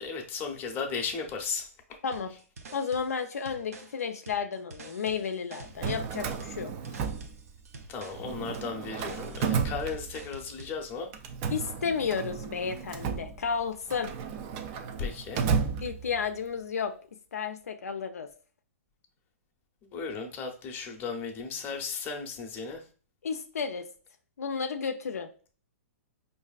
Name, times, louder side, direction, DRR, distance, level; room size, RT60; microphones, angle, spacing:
voice 1, 0.0-2.0 7.9-11.1 15.0-15.4 19.8-22.8, left 5 dB, 25° left, 0.7 m, -35 dB
sound 1, 2.1-10.8, right 3 dB, 75° right, 0.7 m, -48 dB
voice 2, 2.7-6.7 11.5-14.1 15.8-16.9 17.3-18.3 23.2-23.8 24.4-25.3, left 6 dB, 85° left, 0.5 m, -32 dB
Drawer open or close, 5.6-7.8 8.1-10.5 11.1-16.4, right 6 dB, 35° right, 0.4 m, -33 dB
4.7 x 2.6 x 2.4 m
hypercardioid pair, 135°, 8 cm